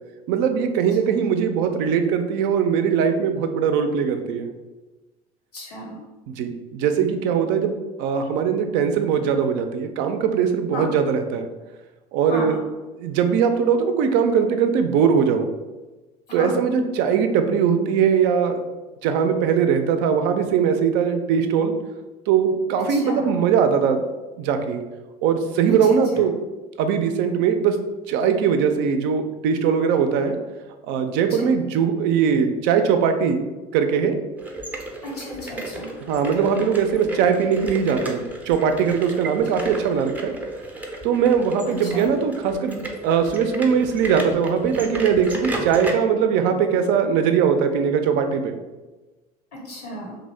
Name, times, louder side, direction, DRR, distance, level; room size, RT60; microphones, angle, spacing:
voice 1, 0.3-4.5 6.3-11.5 12.1-12.6 13.0-15.5 16.3-18.6 19.0-21.7 22.3-24.0 24.4-24.8 25.2-26.3 26.8-27.8 28.1-30.4 30.8-33.4 33.7-34.2 36.1-40.3 41.0-48.6, right 7 dB, 60° right, 7 dB, 0.4 m, -21 dB
voice 2, 5.5-6.0 10.7-10.8 12.3-12.6 16.3-16.6 22.9-23.3 26.1-26.3 31.3-31.5 35.0-35.9 41.8-42.1 49.6-50.2, left 1 dB, 90° left, -3 dB, 1.0 m, -33 dB
sound 1, 34.4-45.9, right 1 dB, 10° right, 0.5 m, -33 dB
2.7 x 2.1 x 3.2 m, 1.2 s
hypercardioid pair, 70°, 20 cm